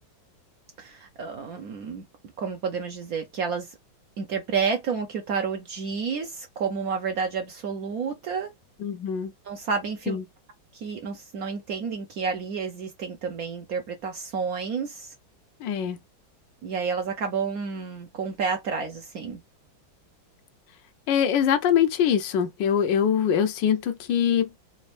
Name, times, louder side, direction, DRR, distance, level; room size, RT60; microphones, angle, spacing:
voice 1, 0.8-2.0 2.4-3.7 4.2-8.5 9.4-10.2 10.7-15.1 16.6-19.4, right 5 dB, 65° right, 0.9 m, -30 dB
voice 2, 8.8-9.3 10.1-10.2 15.6-16.0 21.1-24.6, left 8 dB, 75° left, 1.2 m, -23 dB
4.1 x 2.5 x 3.1 m
omnidirectional pair, 2.1 m